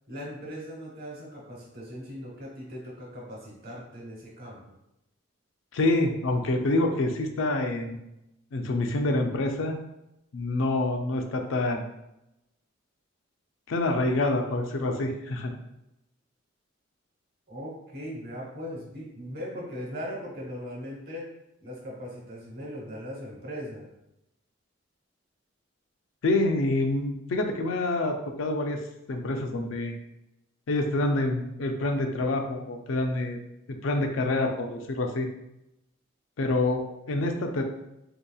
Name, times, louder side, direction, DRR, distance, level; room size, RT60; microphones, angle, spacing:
voice 1, 0.1-4.7 17.5-21.2 21.6-23.9, equal, 50° right, -3 dB, 1.1 m, -39 dB
voice 2, 5.7-8.0 8.5-9.8 10.3-11.8 13.7-15.5 26.2-28.8 29.1-29.9 30.7-33.4 33.8-35.3 36.4-37.6, left 2 dB, 75° left, 4 dB, 0.4 m, -27 dB
3.5 x 2.7 x 2.3 m, 0.87 s
head